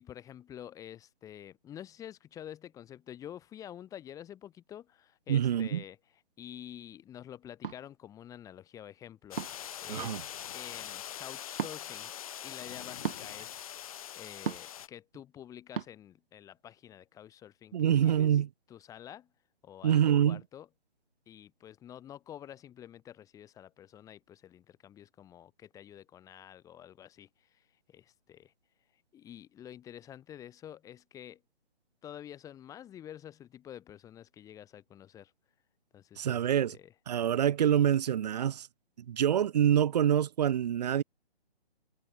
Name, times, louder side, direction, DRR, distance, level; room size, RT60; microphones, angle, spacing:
voice 1, 0.0-6.0 6.4-10.2 10.5-12.1 12.4-13.6 14.2-18.3 18.7-19.3 19.6-20.7 21.3-28.5 29.1-31.4 32.0-35.3 35.9-36.4 36.7-36.9, left 10 dB, 10° left, 3.6 m, -48 dB
voice 2, 5.3-5.8 9.9-10.2 17.7-18.5 19.8-20.4 36.2-36.8 37.1-38.7 39.1-41.0, right 10 dB, 40° right, 3.3 m, -26 dB
sound 1, 7.6-7.8 9.4-9.7 11.5-11.8 13.0-13.2 14.4-14.8 15.7-15.9, right 7 dB, 55° right, 1.3 m, -35 dB
sound 2, 9.3-14.9, left 10 dB, 35° left, 1.6 m, -43 dB
hypercardioid pair, 155°, 32 cm